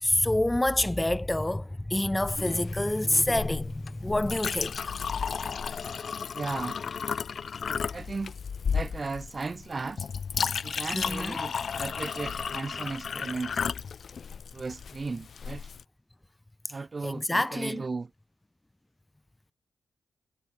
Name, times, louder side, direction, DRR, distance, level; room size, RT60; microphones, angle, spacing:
voice 1, 0.0-4.9 10.9-11.4 17.0-17.8, left 1 dB, 10° left, 2.3 m, -27 dB
Chink clink, 2.2-15.8, left 6 dB, 50° left, 3.9 m, -34 dB
voice 2, 6.3-6.8 7.9-8.4 8.7-10.1 10.6-13.6 14.5-15.7 16.7-18.1, right 4 dB, 30° right, 1.8 m, -36 dB
cardioid pair, 110°, 0 cm